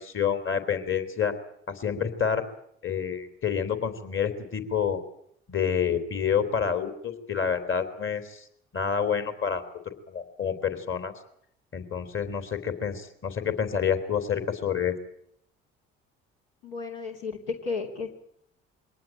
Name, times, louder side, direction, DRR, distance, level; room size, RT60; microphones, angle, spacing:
voice 1, 0.0-1.3 1.7-2.4 2.8-5.0 5.5-8.4 8.7-9.6 10.1-11.1 11.7-14.9, left 7 dB, 45° left, 9 dB, 3.6 m, -28 dB
voice 2, 16.6-18.1, left 4 dB, 85° left, 1 dB, 3.2 m, -33 dB
23.5 x 18.5 x 9.1 m, 0.70 s
hypercardioid pair, 55°, 29 cm